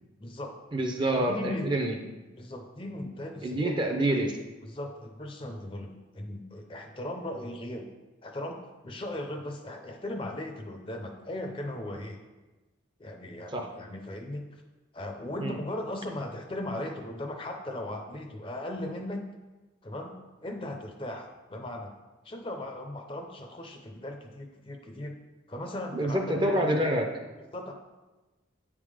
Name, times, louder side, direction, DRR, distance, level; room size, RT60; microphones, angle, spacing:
voice 1, 0.2-0.6 1.3-1.8 2.3-3.7 4.6-7.9 8.2-12.2 13.0-14.6 14.9-19.2 19.8-21.9 22.2-25.1 25.5-26.7 27.5-27.7, left 1 dB, 25° left, 4 dB, 0.6 m, -37 dB
voice 2, 0.7-1.9 3.4-4.4 13.5-13.7 15.4-15.5 25.9-27.1, right 1 dB, 25° right, 3 dB, 0.6 m, -27 dB
8.3 x 3.7 x 4.9 m, 1.2 s
head